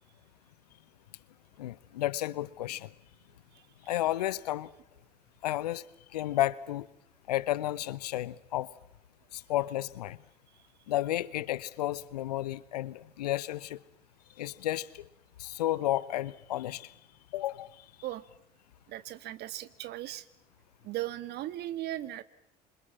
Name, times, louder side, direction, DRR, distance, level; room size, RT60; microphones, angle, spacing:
voice 1, 1.6-2.9 3.9-4.7 5.4-5.8 6.1-6.9 7.3-8.7 9.3-10.2 10.9-13.8 14.4-15.1 15.4-16.9 17.3-17.7, left 14 dB, 75° left, 20 dB, 0.9 m, -32 dB
voice 2, 18.9-20.2 20.8-22.2, right 14 dB, 55° right, 15 dB, 1.7 m, -37 dB
27.0 x 27.0 x 7.4 m, 0.81 s
figure-of-eight pair, 60°, 20 cm